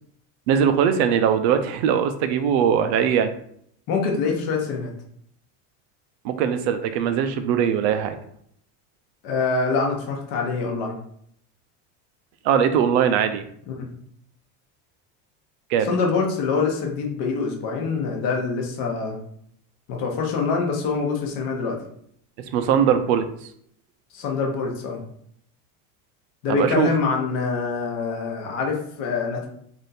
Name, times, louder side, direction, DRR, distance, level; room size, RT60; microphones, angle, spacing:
voice 1, 0.5-3.3 6.2-8.2 12.4-13.4 15.7-15.9 22.5-23.5 26.5-26.9, right 8 dB, 60° right, 9 dB, 0.4 m, -21 dB
voice 2, 3.9-4.9 9.2-11.0 13.7-13.9 15.8-19.2 19.9-21.8 24.1-25.0 26.4-29.5, left 4 dB, 40° left, 0 dB, 0.8 m, -25 dB
3.4 x 2.6 x 4.0 m, 0.67 s
cardioid pair, 175°, 37 cm